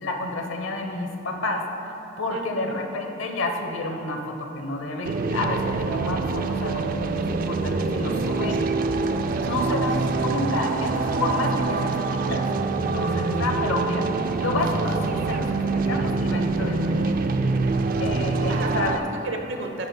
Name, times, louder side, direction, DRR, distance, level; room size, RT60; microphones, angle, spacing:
voice 1, 0.0-8.7 9.5-12.5 12.8-17.2 18.0-19.0, left 2 dB, 85° left, 4 dB, 0.9 m, -30 dB
voice 2, 2.3-2.8 8.7-10.0 10.3-10.5 18.5-19.9, right 2 dB, 70° right, 3 dB, 0.9 m, -34 dB
sound 1, 5.0-19.0, right 3 dB, 45° right, 0.3 m, -25 dB
10.5 x 9.7 x 2.2 m, 2.9 s
head